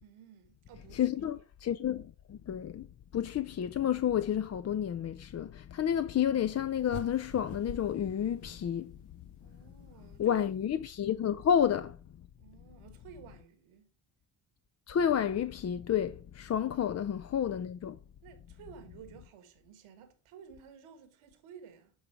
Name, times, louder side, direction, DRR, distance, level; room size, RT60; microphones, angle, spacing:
voice 1, 0.0-1.1 9.4-10.4 12.3-13.9 16.6-16.7 18.2-21.9, right 7 dB, 80° right, 1.5 m, -54 dB
voice 2, 0.9-2.9 3.1-9.0 10.2-12.0 14.9-18.0, left 9 dB, 35° left, 0.4 m, -30 dB
sound 1, 6.9-9.2, left 3 dB, 85° left, 1.3 m, -46 dB
10.5 x 3.9 x 4.8 m
supercardioid pair, 45°, 49 cm